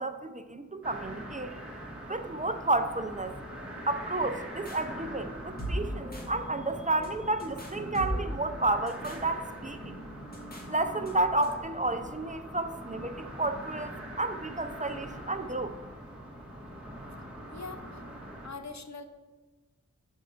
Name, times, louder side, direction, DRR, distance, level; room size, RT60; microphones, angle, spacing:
voice 1, 0.0-1.6 2.1-3.4 3.9-10.0 10.7-15.7, right 2 dB, 25° right, 8 dB, 0.5 m, -31 dB
sound 1, 0.8-18.5, right 1 dB, 5° right, 1.5 m, -43 dB
sound 2, 4.2-11.6, equal, 30° left, 1.6 m, -40 dB
voice 2, 17.5-18.0 18.4-19.0, left 4 dB, 65° left, 8 dB, 0.7 m, -42 dB
7.4 x 4.5 x 5.1 m, 1.3 s
wide cardioid pair, 65°, 30 cm